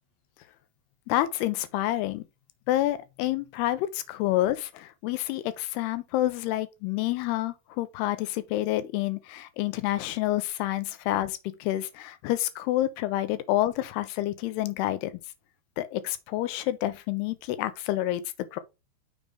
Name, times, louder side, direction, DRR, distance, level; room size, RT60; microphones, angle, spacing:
voice 1, 1.1-2.2 2.7-15.2 15.8-18.2 18.5-18.6, left 15 dB, 90° left, 2.7 m, -28 dB
6.5 x 3.4 x 4.8 m
omnidirectional pair, 4.6 m